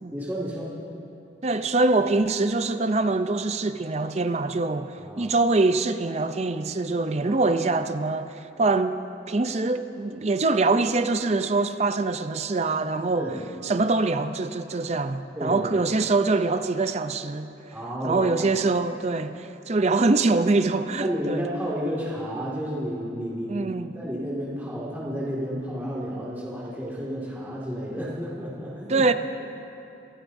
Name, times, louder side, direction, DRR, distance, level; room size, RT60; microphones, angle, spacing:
voice 1, 0.1-0.7 5.0-5.3 7.2-7.4 13.1-13.4 15.4-15.7 17.7-18.5 21.0-29.1, equal, 10° right, 2.0 m, -31 dB
voice 2, 1.4-9.0 9.3-13.3 13.6-17.5 18.0-21.5 23.5-23.9 28.9-29.1, right 3 dB, 35° right, 0.5 m, -24 dB
27.0 x 16.0 x 2.7 m
head